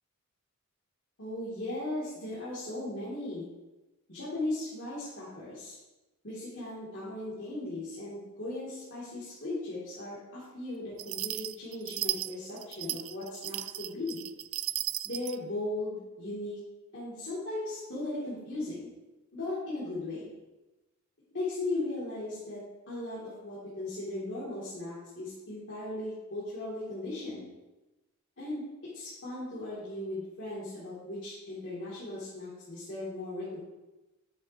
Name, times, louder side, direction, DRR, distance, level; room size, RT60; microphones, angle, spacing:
voice 1, 1.2-3.5 4.1-5.8 6.2-14.2 15.0-16.6 16.9-18.9 19.3-20.3 21.3-22.6 22.9-27.4 28.4-28.6 28.9-33.6, left 2 dB, 60° left, -10 dB, 2.9 m, -37 dB
sound 1, 11.0-15.4, right 16 dB, 65° right, 0.3 m, -35 dB
11.0 x 8.3 x 3.0 m, 1.1 s
head